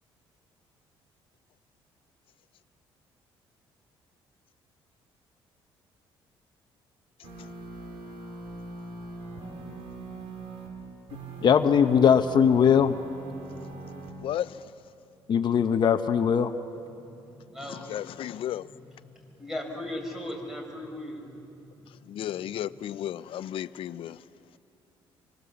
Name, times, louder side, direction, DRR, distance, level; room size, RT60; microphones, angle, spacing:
sound 1, 7.2-10.7 11.1-14.1, right 3 dB, 75° right, 4.2 m, -41 dB
voice 1, 11.4-13.0 15.3-16.5, left 7 dB, 50° left, 0.9 m, -20 dB
voice 2, 14.2-14.6 17.7-18.7 22.1-24.2, left 11 dB, 65° left, 0.6 m, -34 dB
voice 3, 16.9-17.9 19.0-22.3, left 1 dB, 5° right, 5.4 m, -39 dB
25.5 x 25.0 x 7.1 m
cardioid pair, 110°, 10 cm